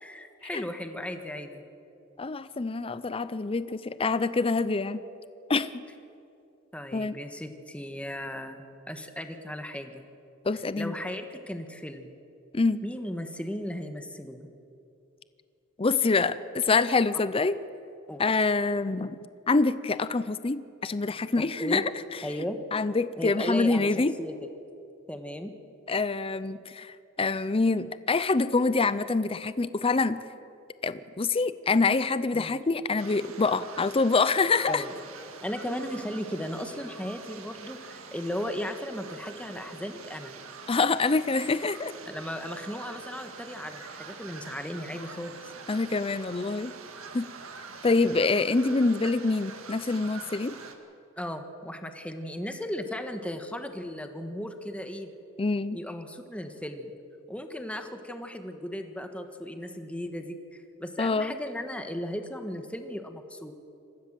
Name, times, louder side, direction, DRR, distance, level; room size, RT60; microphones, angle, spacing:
voice 1, 0.0-1.6 6.7-10.1 10.8-12.1 12.8-14.5 18.1-18.3 21.4-21.8 22.2-22.6 23.2-24.3 25.1-25.5 32.3-32.5 34.7-34.9 35.4-40.3 42.1-45.5 51.2-55.1 55.7-56.9 57.3-63.5, left 1 dB, 5° left, 6 dB, 1.4 m, -36 dB
voice 2, 2.2-5.0 5.5-5.8 6.9-7.2 10.4-11.0 12.5-12.8 15.8-17.6 18.2-19.2 19.5-22.2 22.7-24.1 25.9-30.2 30.8-34.8 40.7-41.9 45.7-46.7 47.1-47.3 47.8-50.6 55.4-55.8 61.0-61.4, left 3 dB, 25° left, 15 dB, 0.5 m, -26 dB
sound 1, 33.0-50.7, right 5 dB, 85° right, 1.9 m, -45 dB
27.0 x 15.0 x 7.6 m, 2.7 s
head